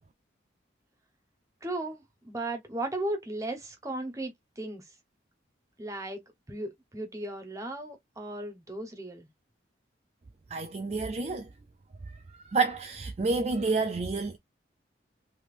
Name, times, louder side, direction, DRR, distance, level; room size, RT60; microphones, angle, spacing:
voice 1, 1.6-4.9 5.8-6.2 6.5-9.3, right 1 dB, 15° right, 0.9 m, -36 dB
voice 2, 10.5-11.5 12.4-14.4, right 4 dB, 35° right, 0.4 m, -29 dB
3.4 x 2.8 x 2.5 m
head